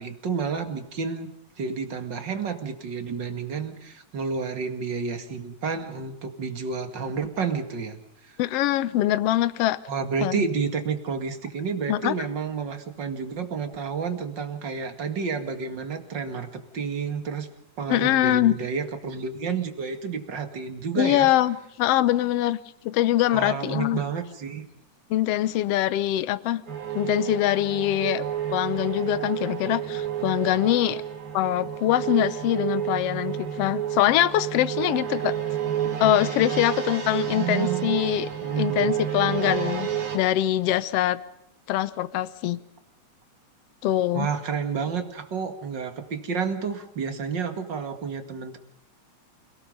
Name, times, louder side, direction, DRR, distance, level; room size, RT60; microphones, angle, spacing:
voice 1, 0.0-1.3 1.6-8.0 8.3-8.4 9.9-17.5 17.8-21.3 23.3-24.6 37.3-38.0 38.4-38.9 44.1-48.6, right 5 dB, 40° right, 7 dB, 2.4 m, -30 dB
voice 2, 8.4-9.8 10.2-10.4 11.9-12.1 17.9-18.6 21.0-22.6 22.8-24.0 25.1-26.6 27.0-28.2 28.5-31.0 31.3-35.3 36.0-38.3 38.6-41.2 41.7-42.6 43.8-44.3, left 13 dB, 65° left, 16 dB, 1.7 m, -23 dB
sound 1, 26.7-40.2, right 10 dB, 85° right, 4.7 m, -30 dB
29.0 x 18.5 x 5.5 m, 0.81 s
omnidirectional pair, 3.4 m